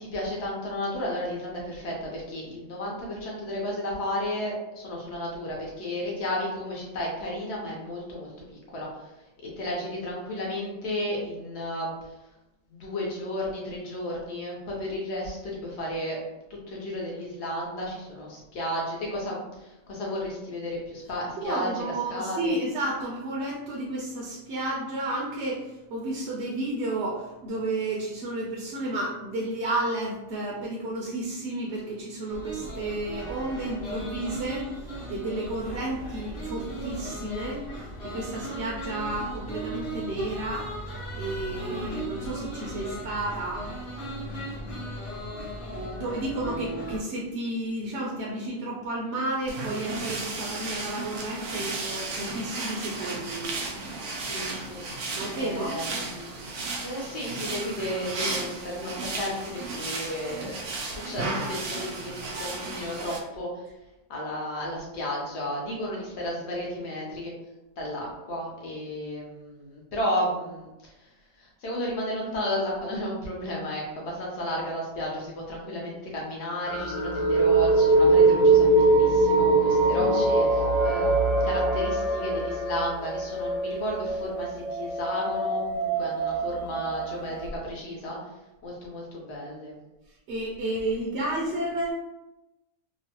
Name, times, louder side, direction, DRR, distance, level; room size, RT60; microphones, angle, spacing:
voice 1, 0.0-8.9 9.6-11.9 12.7-16.2 16.7-21.8 22.1-22.6 41.7-41.8 54.1-54.8 55.4-56.3 56.8-63.5 64.1-67.3 67.8-70.9 71.4-88.2 88.6-89.8, left 1 dB, 60° left, -3 dB, 1.0 m, -33 dB
voice 2, 21.4-40.7 41.1-43.7 44.2-44.9 45.7-53.5 55.2-55.7 80.0-80.3 90.3-91.9, right 1 dB, 65° right, -3 dB, 0.8 m, -32 dB
sound 1, 32.3-47.0, right 1 dB, 35° left, 0.9 m, -37 dB
sound 2, 49.5-63.2, right 3 dB, 90° right, 1.0 m, -34 dB
sound 3, 76.7-87.4, right 2 dB, 85° left, 1.1 m, -23 dB
3.0 x 2.1 x 2.8 m, 0.99 s
omnidirectional pair, 1.4 m